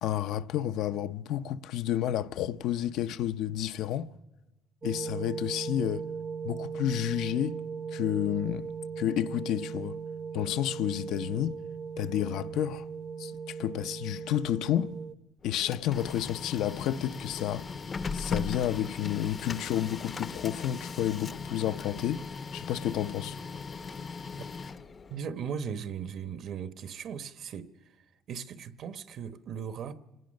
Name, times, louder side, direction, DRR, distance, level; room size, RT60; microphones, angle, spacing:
voice 1, 0.0-4.1 4.8-6.1 6.4-7.6 7.9-8.7 9.0-10.0 10.3-11.6 12.0-12.9 13.2-14.9 15.4-17.7 18.1-22.2 22.5-23.4, left 11 dB, 75° left, 0.6 m, -30 dB
sound 1, 4.8-15.1, right 6 dB, 25° right, 0.7 m, -38 dB
Printer, 15.4-25.2, left 5 dB, 30° left, 0.7 m, -38 dB
voice 2, 25.1-27.7 28.3-30.0, right 7 dB, 50° right, 1.0 m, -37 dB
26.0 x 18.5 x 6.4 m
cardioid pair, 145°, 0 cm